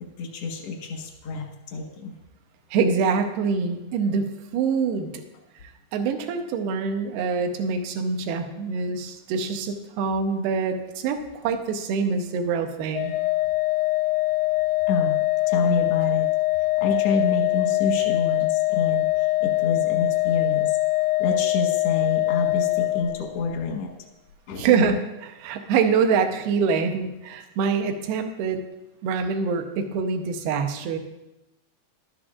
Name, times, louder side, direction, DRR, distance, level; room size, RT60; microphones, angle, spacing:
voice 1, 0.2-2.1 14.9-16.3 16.8-20.8 21.2-23.9 24.5-24.9, left 3 dB, 65° left, 2 dB, 1.5 m, -28 dB
voice 2, 2.7-5.2 5.6-13.1 24.6-28.6 29.0-31.0, right 5 dB, 75° right, 6 dB, 2.7 m, -25 dB
Organ, 12.9-23.6, left 20 dB, 85° left, 2.1 m, -23 dB
13.5 x 12.0 x 2.5 m, 0.97 s
omnidirectional pair, 4.7 m